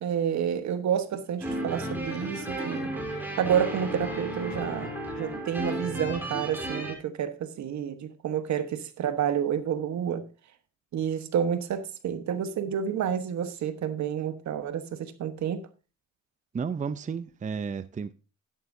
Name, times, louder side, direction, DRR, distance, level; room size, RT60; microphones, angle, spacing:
voice 1, 0.0-2.9 3.4-10.3 10.9-15.7, right 8 dB, 65° right, 1.3 m, -29 dB
sound 1, 1.4-6.9, right 1 dB, 5° right, 3.7 m, -33 dB
voice 2, 16.5-18.1, right 6 dB, 25° right, 0.6 m, -32 dB
11.0 x 11.0 x 2.7 m
cardioid pair, 90°, 30 cm